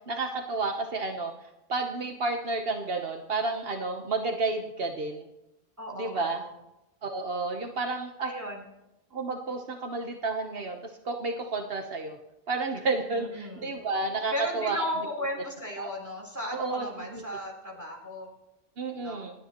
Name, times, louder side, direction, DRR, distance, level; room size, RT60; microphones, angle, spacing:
voice 1, 0.1-1.3 1.7-5.3 6.0-6.4 7.0-8.3 9.1-12.2 12.5-14.8 15.8-15.9 16.5-16.9 17.1-17.2 18.8-19.3, right 3 dB, 70° right, 4 dB, 1.2 m, -31 dB
voice 2, 5.8-6.6 8.2-8.6 13.1-13.8 14.3-18.3 19.0-19.2, equal, 15° right, -2 dB, 3.7 m, -36 dB
28.0 x 10.5 x 3.0 m, 0.94 s
omnidirectional pair, 1.0 m